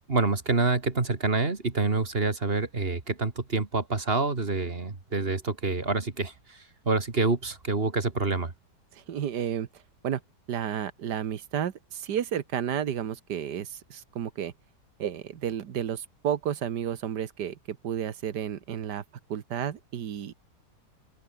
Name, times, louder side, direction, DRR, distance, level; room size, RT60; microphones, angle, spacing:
voice 1, 0.1-8.5, right 3 dB, 35° right, 2.3 m, -27 dB
voice 2, 8.9-9.7 10.0-10.2 10.5-14.5 15.0-19.0 19.3-20.3, right 9 dB, 75° right, 1.9 m, -32 dB
open air
omnidirectional pair, 1.8 m